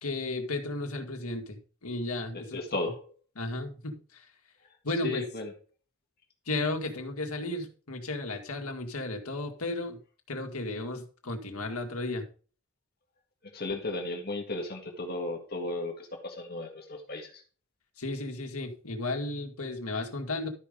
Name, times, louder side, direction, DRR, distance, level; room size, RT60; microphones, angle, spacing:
voice 1, 0.0-2.6 3.4-4.3 4.8-5.3 6.5-10.0 10.3-12.3 18.0-20.5, left 2 dB, 85° left, 4 dB, 1.9 m, -34 dB
voice 2, 2.3-3.1 5.0-5.5 13.4-17.4, left 2 dB, 45° left, 2 dB, 1.8 m, -35 dB
12.5 x 5.3 x 5.1 m, 0.40 s
head